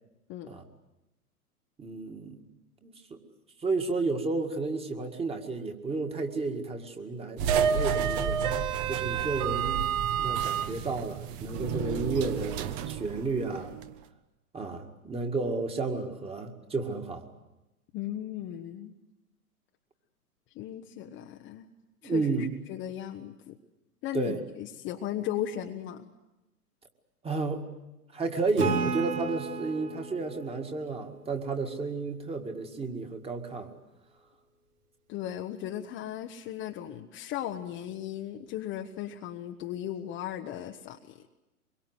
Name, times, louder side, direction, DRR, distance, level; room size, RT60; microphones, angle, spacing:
voice 1, 1.8-2.4 2.8-3.2 3.6-8.4 8.9-9.9 10.2-13.7 14.5-17.3 22.0-22.5 24.1-24.4 27.2-27.7 28.1-33.7, right 3 dB, 15° right, 4 dB, 2.0 m, -32 dB
sound 1, 7.4-13.9, right 8 dB, 30° right, 1.1 m, -30 dB
voice 2, 17.9-18.9 20.5-21.7 22.0-23.6 24.0-26.1 35.1-41.0, left 11 dB, 25° left, 4 dB, 1.0 m, -36 dB
Acoustic guitar / Strum, 28.6-32.0, right 4 dB, 75° right, 4.6 m, -34 dB
24.5 x 23.0 x 8.1 m, 0.98 s
figure-of-eight pair, 110°, 45 cm